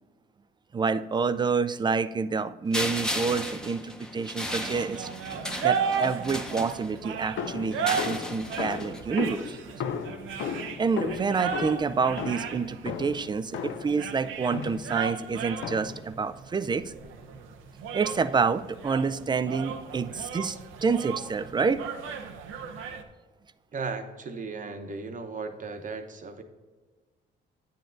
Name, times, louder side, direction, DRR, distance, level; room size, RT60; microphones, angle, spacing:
voice 1, 0.7-5.1 5.6-9.6 10.8-16.9 17.9-21.8, right 5 dB, 20° right, 14 dB, 0.3 m, -28 dB
sound 1, 2.7-7.2 7.7-9.0, left 1 dB, 5° left, 0.8 m, -35 dB
sound 2, 4.5-23.0, right 7 dB, 85° right, 0.7 m, -35 dB
sound 3, 7.4-14.0 14.5-15.0 15.6-16.1, left 7 dB, 75° left, 0.6 m, -35 dB
voice 2, 23.7-26.4, right 4 dB, 40° right, 7 dB, 0.9 m, -36 dB
9.0 x 7.8 x 2.6 m, 1.3 s
cardioid pair, 90°, 20 cm